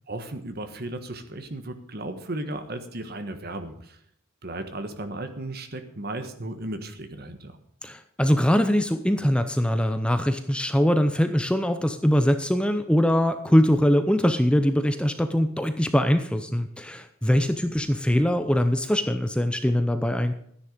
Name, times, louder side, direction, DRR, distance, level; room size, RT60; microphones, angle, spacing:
voice 1, 0.1-4.0 4.4-7.6, right 1 dB, 50° right, 8 dB, 1.4 m, -35 dB
voice 2, 7.8-20.3, equal, 5° left, 8 dB, 0.6 m, -22 dB
12.5 x 10.0 x 5.1 m, 0.68 s
head